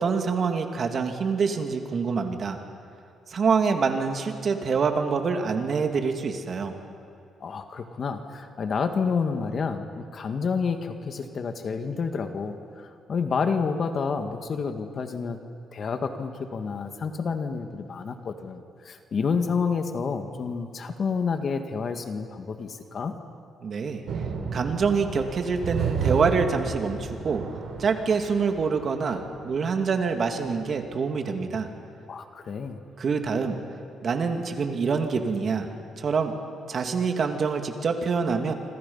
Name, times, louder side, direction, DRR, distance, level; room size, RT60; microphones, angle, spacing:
voice 1, 0.0-2.6 3.3-6.7 23.6-24.0 24.5-27.4 27.8-31.7 33.0-33.6 34.0-35.7 36.0-36.3 36.7-38.5, right 5 dB, 50° right, 4 dB, 2.5 m, -26 dB
voice 2, 7.4-15.4 15.7-23.1 32.1-32.8, left 5 dB, 50° left, 6 dB, 1.9 m, -29 dB
sound 1, 24.1-29.4 30.4-30.5 30.8-30.9, right 6 dB, 70° right, 3.5 m, -32 dB
27.0 x 26.0 x 5.6 m, 2.5 s
cardioid pair, 90°, 0 cm